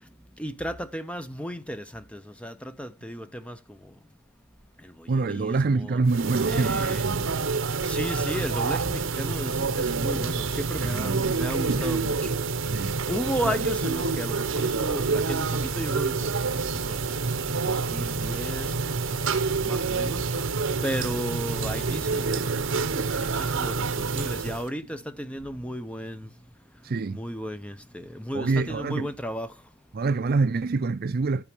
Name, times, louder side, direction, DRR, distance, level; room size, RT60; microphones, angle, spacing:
voice 1, 0.4-3.6 4.8-6.0 6.4-7.1 7.8-12.3 13.1-16.5 16.9-17.2 17.6-18.7 19.3-20.2 20.8-22.8 23.1-26.3 27.1-29.5, equal, 5° left, 0.6 m, -34 dB
voice 2, 5.1-7.3 10.8-11.4 12.7-13.0 26.8-27.2 28.3-29.1 29.9-31.4, right 3 dB, 45° right, 0.4 m, -26 dB
sound 1, 6.1-24.7, right 4 dB, 70° right, 0.8 m, -27 dB
11.0 x 8.6 x 3.0 m
head